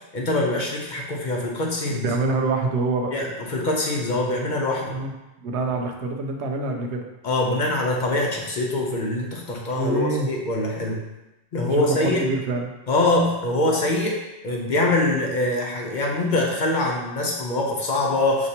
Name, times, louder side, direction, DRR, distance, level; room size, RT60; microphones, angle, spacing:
voice 1, 0.1-2.1 3.1-5.0 7.2-11.0 11.5-12.3 12.9-14.2 14.4-18.5, left 2 dB, 55° left, -1 dB, 0.6 m, -24 dB
voice 2, 1.8-3.1 4.9-5.1 5.4-7.1 9.7-10.3 11.6-12.7, right 3 dB, 85° right, 3 dB, 0.9 m, -26 dB
5.2 x 2.9 x 2.8 m, 0.99 s
omnidirectional pair, 1.1 m